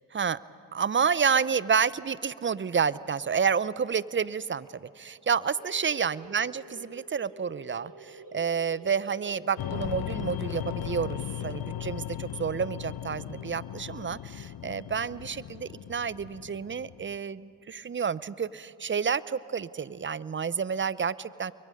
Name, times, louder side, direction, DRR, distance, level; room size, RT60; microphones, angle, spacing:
voice 1, 0.7-21.5, right 6 dB, 30° right, 19 dB, 0.6 m, -29 dB
sound 1, 5.4-14.8, right 1 dB, 50° right, 3.9 m, -50 dB
sound 2, 9.6-17.2, left 12 dB, 65° left, 0.8 m, -37 dB
29.0 x 22.5 x 5.3 m, 2.6 s
supercardioid pair, 40°, 41 cm